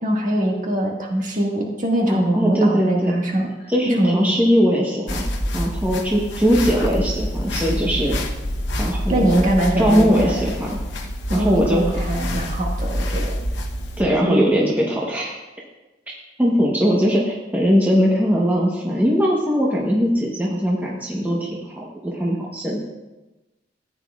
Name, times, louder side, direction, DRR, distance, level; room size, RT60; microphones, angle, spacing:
voice 1, 0.0-3.5 3.8-4.4 9.1-10.5 11.3-13.2 14.2-14.5, right 1 dB, 45° right, -1 dB, 1.7 m, -22 dB
voice 2, 2.1-3.1 3.7-5.2 5.5-8.2 8.8-9.4 9.8-10.8 11.3-11.9 14.0-15.4 16.4-22.8, equal, 10° right, -3 dB, 1.0 m, -20 dB
sound 1, 5.1-14.0, equal, 70° left, 1.0 m, -26 dB
14.0 x 9.0 x 2.4 m, 1.1 s
head